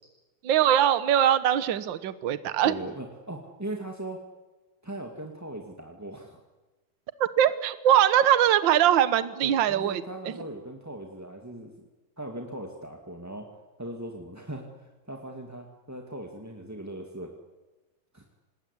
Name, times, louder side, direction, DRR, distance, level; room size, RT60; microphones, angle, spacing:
voice 1, 0.4-2.8 7.2-10.0, right 10 dB, 60° right, 14 dB, 1.2 m, -22 dB
voice 2, 2.6-4.2 4.8-6.4 9.4-11.7 12.2-13.5 13.8-17.3 18.1-18.2, right 1 dB, 5° right, 2 dB, 1.4 m, -39 dB
26.5 x 20.0 x 9.9 m, 1.2 s
omnidirectional pair, 3.8 m